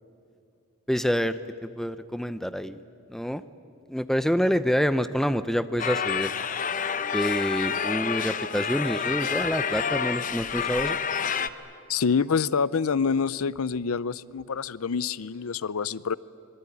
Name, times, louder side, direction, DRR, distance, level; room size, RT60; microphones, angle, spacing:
voice 1, 0.9-2.8 3.1-3.4 3.9-6.3 7.1-11.0, equal, ahead, 13 dB, 0.6 m, -27 dB
sound 1, 5.8-11.5, left 7 dB, 35° left, 0.7 m, -28 dB
voice 2, 11.9-16.2, left 5 dB, 80° left, 19 dB, 0.6 m, -26 dB
25.5 x 21.5 x 10.0 m, 2.7 s
head